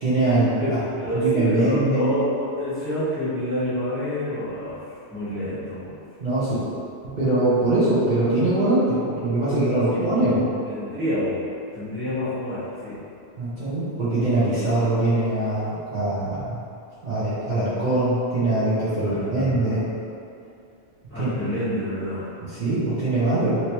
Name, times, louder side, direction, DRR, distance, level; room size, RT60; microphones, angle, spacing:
voice 1, 0.0-0.8 1.1-2.1 6.2-6.6 7.2-10.4 13.4-16.6 17.0-19.8 21.1-21.5 22.4-23.6, right 2 dB, 45° right, -13 dB, 0.8 m, -22 dB
voice 2, 0.7-4.8 5.1-5.9 9.9-10.0 10.7-11.4 11.7-13.0 19.0-19.8 21.1-22.3, equal, 10° left, -15 dB, 1.2 m, -27 dB
3.2 x 2.9 x 2.9 m, 2.5 s
omnidirectional pair, 1.3 m